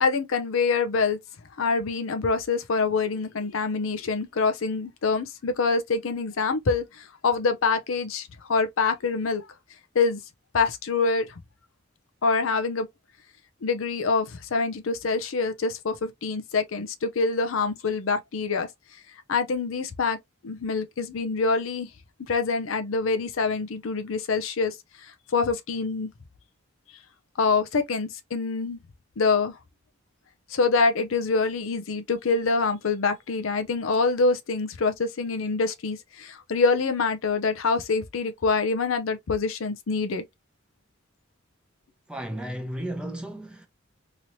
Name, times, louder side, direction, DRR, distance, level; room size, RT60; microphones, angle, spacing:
voice 1, 0.0-1.2 1.6-9.4 9.9-10.2 10.5-11.3 12.2-12.9 13.6-18.7 19.3-20.2 20.4-21.9 22.2-24.7 25.3-26.1 27.4-28.8 29.2-29.5 30.5-40.2, left 4 dB, 75° left, 0.6 m, -25 dB
voice 2, 42.1-43.7, right 1 dB, 5° right, 0.7 m, -34 dB
3.0 x 2.9 x 2.6 m
head